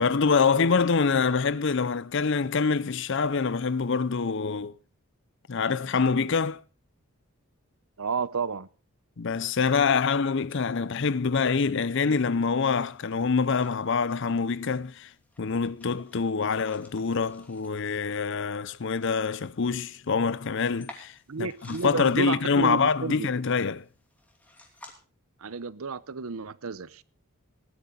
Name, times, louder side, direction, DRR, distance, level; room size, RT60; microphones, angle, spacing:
voice 1, 0.0-4.8 5.5-6.6 9.2-15.1 15.4-23.9, left 5 dB, 55° left, 0.6 m, -25 dB
voice 2, 8.0-8.7 21.3-23.3 25.4-27.0, right 4 dB, 70° right, 0.7 m, -31 dB
sound 1, 11.7-24.9, left 1 dB, 5° left, 2.7 m, -55 dB
19.0 x 11.5 x 3.8 m
head